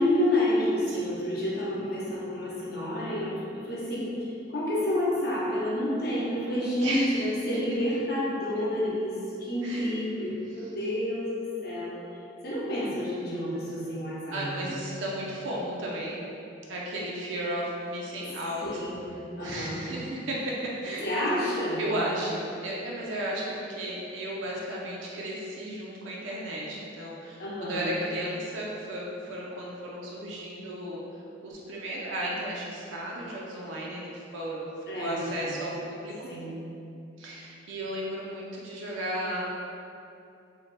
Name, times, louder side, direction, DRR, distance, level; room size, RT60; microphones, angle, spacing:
voice 1, 0.0-12.0 12.4-14.8 18.6-19.8 21.0-21.8 27.4-27.9 34.9-35.5 36.3-36.5, left 1 dB, 55° left, -7 dB, 0.7 m, -29 dB
voice 2, 6.8-7.3 8.5-8.7 9.6-10.0 14.3-16.2 16.7-18.8 19.4-21.0 21.8-31.0 31.4-34.7 35.0-36.3 37.2-39.4, right 1 dB, 85° right, -4 dB, 0.4 m, -34 dB
2.6 x 2.1 x 3.1 m, 2.6 s
head